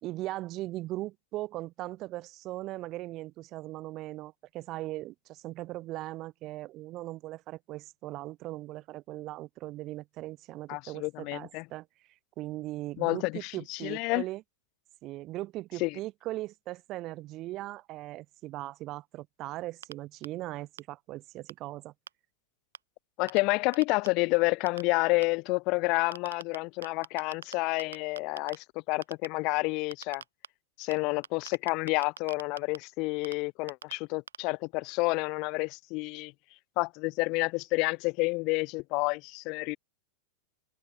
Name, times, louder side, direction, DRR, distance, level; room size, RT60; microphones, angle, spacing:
voice 1, 0.0-11.9 12.4-14.4 15.0-21.9, right 17 dB, 35° right, 4.3 m, -39 dB
voice 2, 10.7-11.6 13.0-14.2 15.8-16.0 23.2-30.2 30.8-36.3 36.8-39.8, left 26 dB, 40° left, 0.7 m, -29 dB
sound 1, 19.8-19.9 20.2-20.3 20.8-20.9 21.5-21.6 22.1-22.2 22.7-22.8 23.3-23.4 23.7-24.1 24.7-24.8 25.2-25.3 26.1-26.6 26.8-27.5 27.8-28.6 29.0-29.3 29.9-30.5 30.9-31.0 31.2-32.8 33.2-33.3 33.7-33.9 34.3-34.4, right 7 dB, 70° right, 7.6 m, -41 dB
figure-of-eight pair, 90°, 0 cm